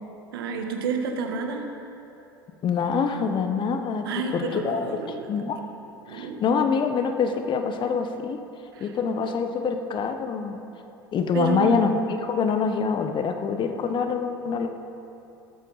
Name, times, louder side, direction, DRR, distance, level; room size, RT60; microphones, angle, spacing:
voice 1, 0.3-1.7 4.0-5.3 6.1-6.4 8.7-8.9 11.3-11.9, right 5 dB, 75° right, 4 dB, 1.5 m, -30 dB
voice 2, 2.6-4.1 4.3-5.0 5.3-5.6 6.1-8.4 8.8-10.6 11.1-11.9 12.2-14.7, left 6 dB, 40° left, 7 dB, 1.2 m, -25 dB
16.5 x 13.0 x 4.2 m, 2.8 s
figure-of-eight pair, 70°, 12 cm